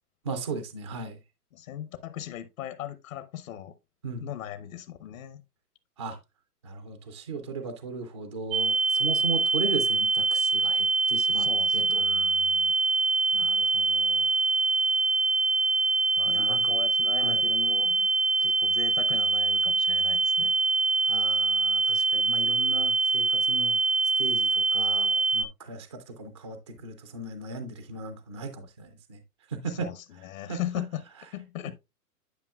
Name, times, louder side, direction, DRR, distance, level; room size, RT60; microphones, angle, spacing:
voice 1, 0.2-1.2 4.0-4.3 6.0-6.2 6.6-11.5 11.7-12.1 13.3-14.3 16.2-16.7 17.2-17.5 21.0-23.8 24.2-29.2 29.5-29.9 30.1-30.8 31.7-31.8, right 4 dB, 20° right, 0.3 m, -37 dB
voice 2, 1.5-3.7 4.2-5.4 11.3-12.7 13.4-13.5 16.2-18.1 18.4-20.5 29.7-31.0 31.3-31.7, left 11 dB, 55° left, 0.9 m, -38 dB
sound 1, 8.5-25.5, right 4 dB, 60° right, 0.6 m, -24 dB
10.5 x 5.2 x 2.3 m
hypercardioid pair, 130°, 47 cm